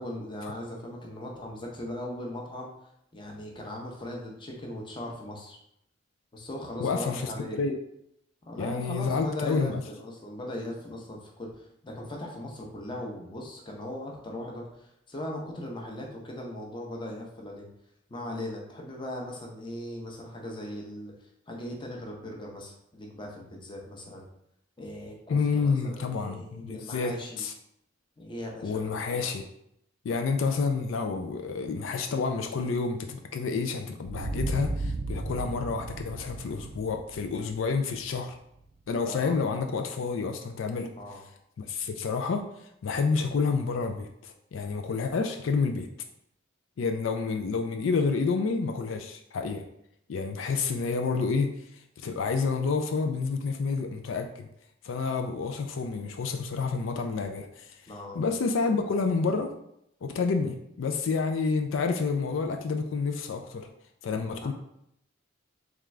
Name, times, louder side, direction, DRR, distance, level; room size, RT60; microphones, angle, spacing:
voice 1, 0.0-5.6 6.3-7.6 8.5-17.7 18.1-24.3 24.8-27.5 28.2-29.2 39.0-39.4 41.0-41.2 57.9-58.2 64.2-64.5, left 1 dB, 25° left, 0 dB, 0.7 m, -39 dB
voice 2, 6.8-7.8 8.6-9.8 25.3-27.5 28.6-29.4 30.0-38.4 38.9-40.9 41.6-45.9 46.8-49.6 50.1-51.5 52.0-54.5 54.8-57.8 58.1-59.5 60.0-63.7 64.0-64.5, left 4 dB, 80° left, 5 dB, 0.4 m, -29 dB
sound 1, 34.1-38.7, right 2 dB, 45° right, 0.3 m, -35 dB
3.6 x 3.5 x 3.2 m, 0.76 s
head